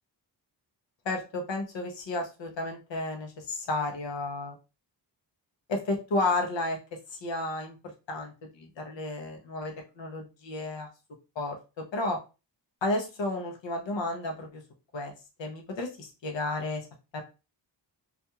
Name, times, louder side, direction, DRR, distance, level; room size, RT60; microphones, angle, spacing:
voice 1, 1.1-4.6 5.7-6.8 7.1-7.8 8.1-10.9 11.4-12.2 12.8-14.6 14.9-15.1 15.4-16.9 17.1-17.2, left 2 dB, 75° left, 2 dB, 0.8 m, -32 dB
2.4 x 2.3 x 2.8 m, 0.29 s
wide cardioid pair, 75°, 45 cm